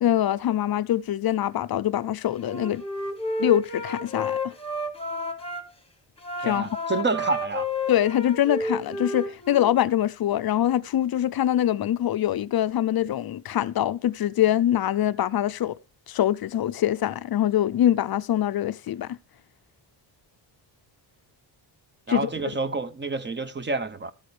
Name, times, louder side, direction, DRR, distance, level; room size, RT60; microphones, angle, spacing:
voice 1, 0.0-2.8 3.4-4.5 6.4-6.6 7.9-15.8 16.1-19.2 22.1-22.3, left 12 dB, 50° left, 0.5 m, -24 dB
Wind instrument woodwind instrument, 2.3-5.6 6.2-9.7, left 2 dB, 10° left, 1.2 m, -31 dB
voice 2, 6.4-7.7 22.1-24.1, right 3 dB, 25° right, 0.8 m, -28 dB
14.0 x 8.6 x 3.3 m
wide cardioid pair, 140°, 46 cm